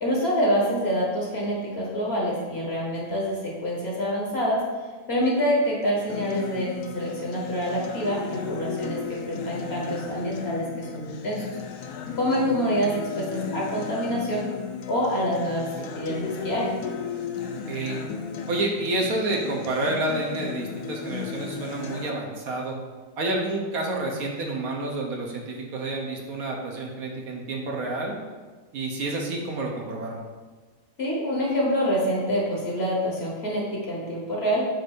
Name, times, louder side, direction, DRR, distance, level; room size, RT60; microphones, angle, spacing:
voice 1, 0.0-4.7 5.1-11.4 12.2-14.5 14.9-16.7 31.0-34.7, equal, 45° left, -3 dB, 1.2 m, -26 dB
Acoustic guitar, 6.1-22.1, left 6 dB, 75° left, 1.1 m, -35 dB
voice 2, 17.7-18.0 18.5-22.8 23.2-28.1 28.7-30.2, right 2 dB, 65° right, -1 dB, 1.3 m, -29 dB
7.6 x 2.6 x 5.2 m, 1.4 s
omnidirectional pair, 1.7 m